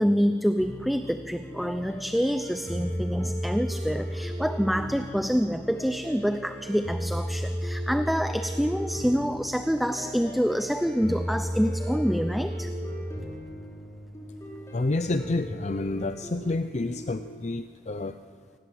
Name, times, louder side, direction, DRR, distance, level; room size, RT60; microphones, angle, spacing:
voice 1, 0.0-12.7, equal, ahead, 8 dB, 0.6 m, -27 dB
sound 1, 0.6-17.3, equal, 15° left, 5.0 m, -35 dB
voice 2, 14.7-18.2, left 2 dB, 40° left, 10 dB, 0.6 m, -29 dB
26.5 x 19.0 x 7.8 m, 2.1 s
head